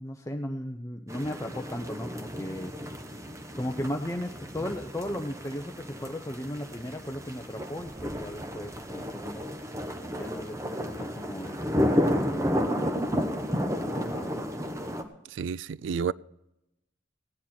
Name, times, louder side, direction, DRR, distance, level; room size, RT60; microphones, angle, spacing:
voice 1, 0.0-2.7 3.6-9.4 10.0-13.0 13.5-14.4, left 1 dB, 15° left, 0.7 m, -36 dB
sound 1, 1.1-15.0, equal, 15° right, 1.0 m, -32 dB
voice 2, 15.3-16.1, right 6 dB, 80° right, 0.4 m, -30 dB
17.0 x 10.0 x 4.3 m
head